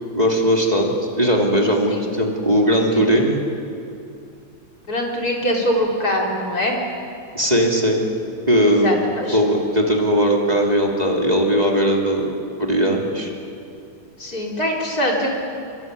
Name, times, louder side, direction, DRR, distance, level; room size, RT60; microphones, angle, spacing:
voice 1, 0.1-3.4 7.3-8.0 8.5-9.0 9.3-12.3 12.6-13.3, equal, 15° right, -1 dB, 2.6 m, -18 dB
voice 2, 4.9-6.8 8.7-9.4 14.2-15.3, equal, 30° left, -1 dB, 4.2 m, -23 dB
25.0 x 23.5 x 9.5 m, 2.6 s
omnidirectional pair, 3.6 m